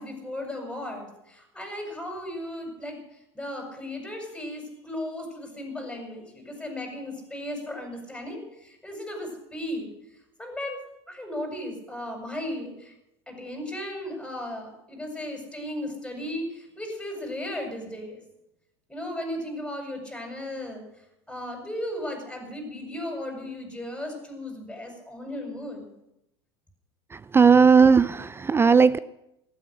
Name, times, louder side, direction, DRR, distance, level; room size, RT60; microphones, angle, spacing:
voice 1, 0.0-3.0 3.3-9.9 10.4-10.8 11.1-12.9 13.3-18.2 18.9-20.8 21.3-25.9, left 1 dB, 5° left, 2 dB, 7.7 m, -35 dB
voice 2, 27.3-29.0, right 5 dB, 15° right, 16 dB, 0.5 m, -16 dB
15.5 x 13.0 x 6.5 m, 0.84 s
hypercardioid pair, 85°, 14 cm